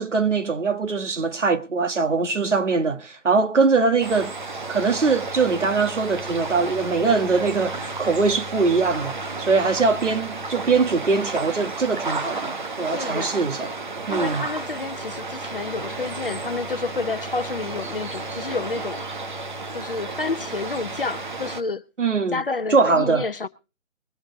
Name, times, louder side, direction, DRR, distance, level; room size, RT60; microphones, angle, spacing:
voice 1, 0.0-4.3 4.7-13.7 14.1-14.4 22.0-22.4 22.7-23.3, right 4 dB, 65° right, 1.7 m, -22 dB
sound 1, 4.0-21.6, right 3 dB, 35° right, 1.1 m, -32 dB
voice 2, 12.9-13.4 14.1-19.0 19.7-21.8 22.3-23.5, left 3 dB, 45° left, 0.8 m, -29 dB
21.5 x 8.1 x 3.9 m
figure-of-eight pair, 160°, 39 cm